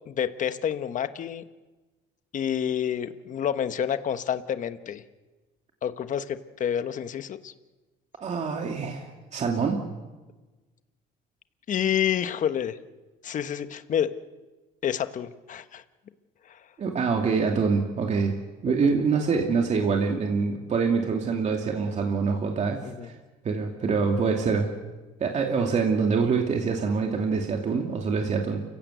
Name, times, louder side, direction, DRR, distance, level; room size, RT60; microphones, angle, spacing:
voice 1, 0.1-1.4 2.3-5.0 5.8-7.5 11.7-12.8 13.2-14.1 14.8-15.8 16.5-16.6 18.8-19.0 22.8-23.1, left 9 dB, 50° left, 11 dB, 1.2 m, -28 dB
voice 2, 8.2-9.8 16.8-18.4 18.6-23.2 23.4-24.7 25.2-28.6, right 5 dB, 45° right, 2 dB, 2.5 m, -25 dB
29.0 x 16.0 x 8.3 m, 1.2 s
cardioid pair, 110°, 17 cm